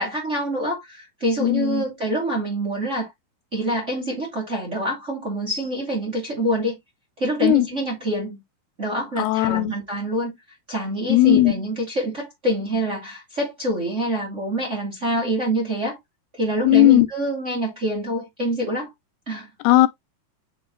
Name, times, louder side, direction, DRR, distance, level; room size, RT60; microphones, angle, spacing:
voice 1, 0.0-3.1 3.5-6.8 7.2-8.4 8.8-10.4 10.7-16.0 16.3-18.9 19.3-19.5, right 1 dB, 30° right, 1.4 m, -26 dB
voice 2, 1.4-1.9 7.4-7.7 9.2-9.8 11.1-11.5 16.6-17.1 19.6-19.9, left 16 dB, 90° left, 2.7 m, -16 dB
8.6 x 3.9 x 2.9 m
omnidirectional pair, 4.5 m